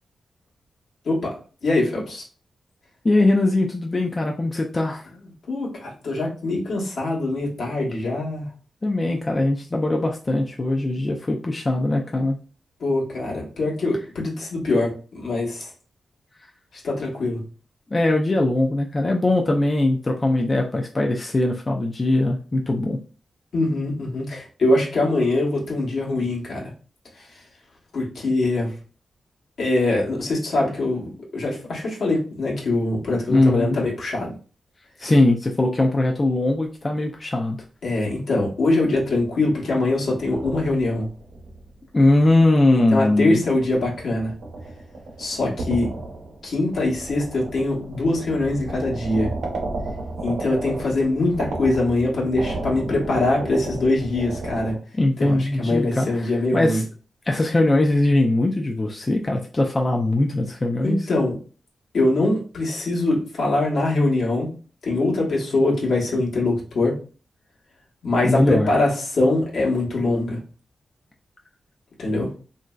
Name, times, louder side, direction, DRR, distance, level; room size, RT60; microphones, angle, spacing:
voice 1, 1.6-2.2 5.5-8.5 12.8-15.7 16.7-17.4 23.5-26.6 27.2-27.3 27.9-28.7 29.6-34.3 37.8-41.1 42.7-44.3 45.2-45.9 46.4-49.3 50.2-54.7 55.2-56.8 60.8-61.4 61.9-64.5 64.8-66.9 68.0-70.4 72.0-72.3, left 2 dB, 75° left, -3 dB, 1.0 m, -23 dB
voice 2, 3.0-5.0 8.8-12.4 17.9-23.0 33.3-33.8 35.0-37.6 41.9-43.4 55.0-56.9 57.3-61.0 68.2-68.7, left 2 dB, 30° left, 1 dB, 0.4 m, -21 dB
sound 1, 38.7-39.4 39.9-42.7 43.1-54.8, right 2 dB, 90° right, 0.7 m, -34 dB
2.9 x 2.6 x 2.2 m, 0.38 s
cardioid pair, 80°, 0 cm